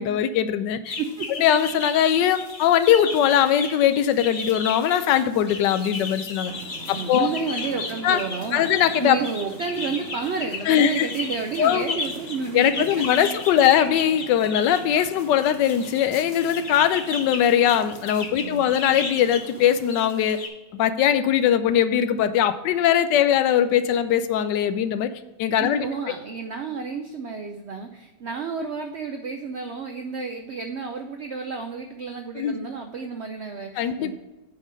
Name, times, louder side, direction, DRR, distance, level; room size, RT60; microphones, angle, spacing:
voice 1, 0.0-0.9 1.4-6.5 6.9-7.3 8.0-8.2 8.5-9.2 10.7-11.1 11.6-12.0 12.5-20.4 20.7-25.1 25.4-25.8 32.4-32.6 33.8-34.2, left 9 dB, 80° left, 11 dB, 1.2 m, -21 dB
sound 1, 0.8-20.5, left 4 dB, 40° left, 0.8 m, -35 dB
voice 2, 1.0-1.3 6.9-13.0 13.5-13.6 18.3-18.7 25.6-34.2, right 5 dB, 75° right, 5 dB, 0.6 m, -31 dB
sound 2, 6.4-20.0, right 4 dB, 55° right, 1.0 m, -45 dB
8.5 x 3.8 x 6.3 m, 1.1 s
omnidirectional pair, 1.9 m